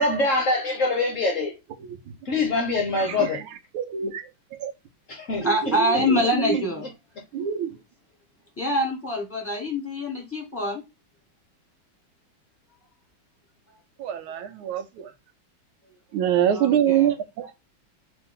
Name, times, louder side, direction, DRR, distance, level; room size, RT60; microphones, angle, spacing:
voice 1, 0.0-1.6 2.3-3.4 5.1-5.5, left 2 dB, 55° left, 0.9 m, -24 dB
voice 2, 3.7-4.2 4.6-4.7 5.4-6.6 7.3-7.7 14.0-15.1 16.1-17.5, right 9 dB, 85° right, 1.6 m, -25 dB
voice 3, 5.4-6.9 8.6-10.8 16.5-17.1, left 1 dB, 5° left, 1.5 m, -25 dB
3.5 x 3.4 x 3.6 m
omnidirectional pair, 2.3 m